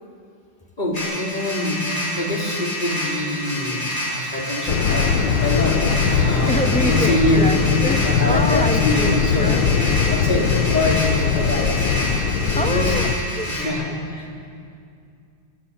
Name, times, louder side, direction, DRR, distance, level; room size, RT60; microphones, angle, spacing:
voice 1, 0.8-1.8 2.1-7.5 8.0-9.5 10.1-12.1 12.5-12.9 13.5-13.8 14.2-14.3, left 1 dB, 20° left, -3 dB, 4.2 m, -24 dB
sound 1, 0.9-13.7, left 1 dB, 40° left, 7.8 m, -28 dB
sound 2, 4.7-13.2, left 7 dB, 80° left, 1.7 m, -21 dB
voice 2, 6.5-10.1 12.5-13.9, equal, 5° left, 3 dB, 1.1 m, -27 dB
27.5 x 21.5 x 7.1 m, 2.4 s
omnidirectional pair, 2.2 m